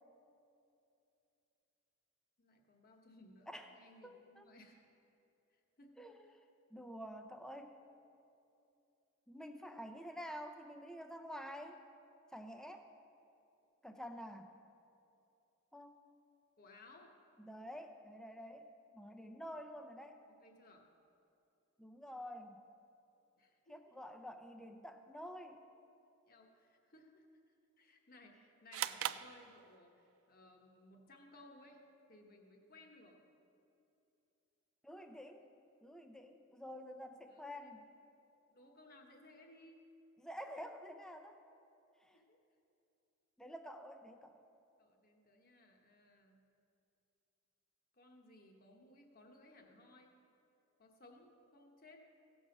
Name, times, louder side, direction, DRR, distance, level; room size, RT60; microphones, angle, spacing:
voice 1, 2.4-4.9 5.5-6.1 16.6-17.2 20.3-20.9 23.4-23.8 26.3-31.8 32.1-33.2 37.3-37.8 38.5-39.9 42.1-42.4 44.8-46.4 47.9-50.2 50.8-52.0, left 2 dB, 45° left, 2 dB, 1.2 m, -61 dB
voice 2, 4.0-4.5 6.0-6.2 6.7-7.7 9.3-11.8 12.3-12.9 13.8-14.5 15.7-16.0 17.4-18.7 18.9-20.2 21.8-22.6 23.7-25.6 34.8-35.4 35.8-37.8 40.2-41.4 42.0-42.2 43.4-44.4, equal, 5° left, 6 dB, 0.5 m, -49 dB
sound 1, 28.7-30.1, right 12 dB, 75° right, 0.3 m, -41 dB
16.5 x 6.3 x 5.2 m, 2.8 s
head